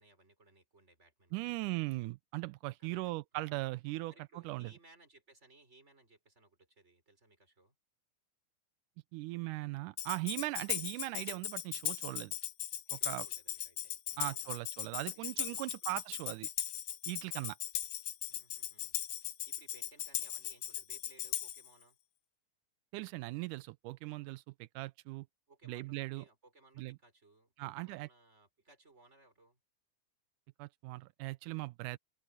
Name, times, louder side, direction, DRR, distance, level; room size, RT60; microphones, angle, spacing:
voice 1, 0.0-1.7 2.8-3.7 4.1-7.8 10.7-10.8 12.9-14.6 15.0-16.0 18.3-22.0 25.5-29.6, right 2 dB, 20° right, 5.9 m, -64 dB
voice 2, 1.3-4.1 4.5-4.7 9.1-12.4 12.9-13.3 14.2-16.5 17.1-17.6 22.9-24.4 24.8-25.3 25.7-26.2 26.8-26.9 27.6-28.1 30.6-32.0, right 20 dB, 90° right, 2.1 m, -39 dB
Tambourine, 10.0-21.7, left 11 dB, 65° left, 1.5 m, -38 dB
open air
omnidirectional pair, 3.6 m